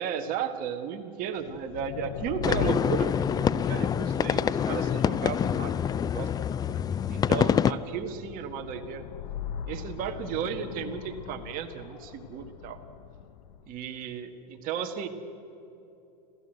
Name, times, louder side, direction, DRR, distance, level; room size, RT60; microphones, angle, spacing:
voice 1, 0.0-6.3 7.1-9.0 9.7-12.8 13.7-15.1, right 7 dB, 45° right, 6 dB, 1.7 m, -34 dB
sound 1, 1.4-14.0, left 9 dB, 80° left, 1.1 m, -41 dB
sound 2, 2.4-7.7, left 8 dB, 20° left, 0.4 m, -26 dB
27.0 x 15.5 x 7.9 m, 2.8 s
supercardioid pair, 125°, 21 cm